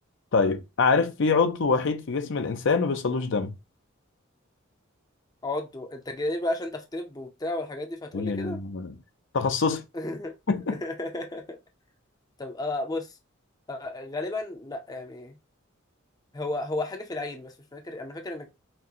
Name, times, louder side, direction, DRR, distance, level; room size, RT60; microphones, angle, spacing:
voice 1, 0.3-3.5 8.1-9.0 9.3-9.8 10.5-10.8, left 4 dB, 60° left, 0.6 m, -25 dB
voice 2, 5.4-8.6 9.9-10.3 10.7-11.6 12.4-13.1 13.7-15.4 16.3-18.5, left 2 dB, 20° left, 0.6 m, -33 dB
5.9 x 2.1 x 2.7 m
head